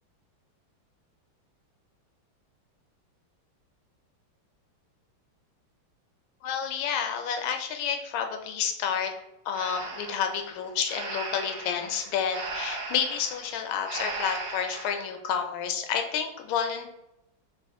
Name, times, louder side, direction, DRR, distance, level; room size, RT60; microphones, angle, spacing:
voice 1, 6.4-9.1 9.4-16.9, left 7 dB, 85° left, 5 dB, 1.4 m, -30 dB
Breathing, 9.5-15.1, right 3 dB, 75° right, 0.7 m, -37 dB
4.1 x 2.5 x 3.5 m, 0.89 s
omnidirectional pair, 2.2 m